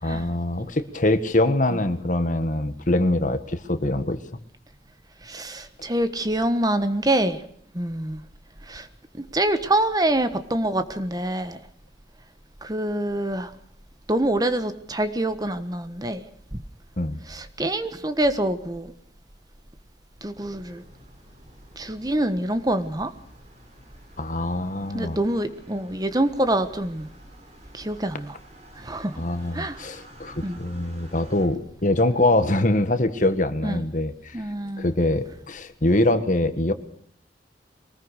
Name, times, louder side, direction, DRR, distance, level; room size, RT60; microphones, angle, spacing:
voice 1, 0.0-4.2 17.0-17.2 24.2-25.2 29.2-34.4 34.8-36.7, left 1 dB, 45° left, 1.6 m, -23 dB
voice 2, 5.2-7.4 7.7-8.2 8.7-8.9 9.1-11.6 12.6-13.5 14.1-16.2 17.3-18.9 20.2-20.8 21.8-23.1 24.9-27.1 27.7-28.3 28.8-29.2 29.5-29.8 30.4-30.6 33.6-33.8 34.3-34.9, right 1 dB, 20° right, 1.3 m, -25 dB
sound 1, 20.3-31.5, equal, 40° right, 5.7 m, -50 dB
23.5 x 20.0 x 6.5 m
head